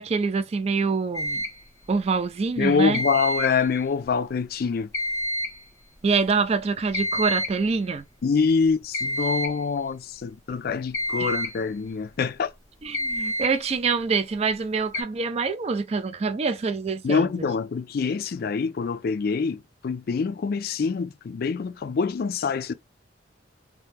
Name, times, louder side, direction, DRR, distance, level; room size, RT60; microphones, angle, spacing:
voice 1, 0.0-1.4 1.9-3.0 6.0-8.0 11.2-11.3 12.8-17.5, right 4 dB, 35° right, 0.4 m, -25 dB
sound 1, 1.1-1.6 2.9-3.6 4.9-5.6 6.9-7.6 8.9-9.6 10.9-11.6 12.9-13.6 14.9-15.0, equal, 15° left, 0.9 m, -28 dB
voice 2, 2.6-4.9 8.2-12.5 17.0-22.7, left 5 dB, 55° left, 0.4 m, -25 dB
2.8 x 2.2 x 3.4 m
head